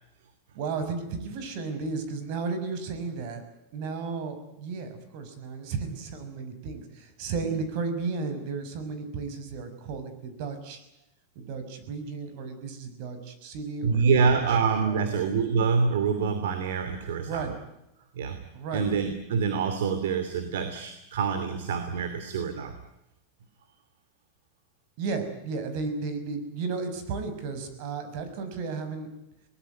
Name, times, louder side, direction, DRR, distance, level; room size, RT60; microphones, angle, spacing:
voice 1, 0.5-3.4 3.7-10.8 11.3-14.6 14.8-15.2 17.3-17.6 18.5-18.9 25.0-29.1, right 4 dB, 55° right, 9 dB, 6.2 m, -34 dB
voice 2, 13.8-17.5 18.2-18.4 18.7-22.7, right 5 dB, 85° right, 9 dB, 2.9 m, -26 dB
23.0 x 20.0 x 9.4 m, 0.89 s
supercardioid pair, 145°, 0 cm